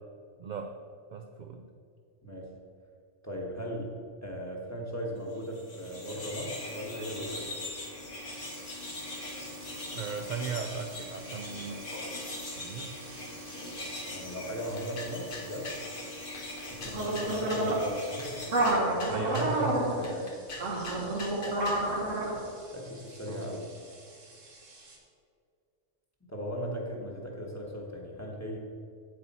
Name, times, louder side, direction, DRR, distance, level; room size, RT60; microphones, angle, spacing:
voice 1, 0.4-0.7 1.1-1.7 9.9-11.8 12.5-13.0 19.1-19.8 23.3-23.5, right 6 dB, 60° right, 5 dB, 0.5 m, -37 dB
voice 2, 2.2-2.5 3.2-7.5 14.0-15.7 16.7-20.3 22.7-23.8 26.2-28.6, equal, 15° left, -1 dB, 1.1 m, -38 dB
sound 1, 5.4-18.7, left 1 dB, 75° left, 2.1 m, -41 dB
sound 2, 8.3-25.0, right 1 dB, 90° right, 1.8 m, -34 dB
sound 3, 14.7-15.9 16.3-17.7 18.2-19.6 20.0-21.9, left 3 dB, 50° left, 1.0 m, -43 dB
8.3 x 7.9 x 4.2 m, 2.3 s
omnidirectional pair, 1.3 m